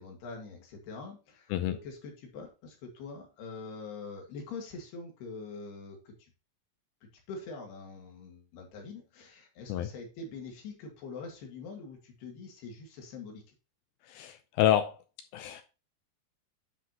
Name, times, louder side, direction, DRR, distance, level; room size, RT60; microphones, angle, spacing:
voice 1, 0.0-6.3 7.3-13.4, left 4 dB, 70° left, 2 dB, 4.2 m, -44 dB
voice 2, 14.1-15.0 15.3-15.6, left 12 dB, 90° left, 9 dB, 2.1 m, -28 dB
10.0 x 5.9 x 2.8 m, 0.32 s
omnidirectional pair, 5.0 m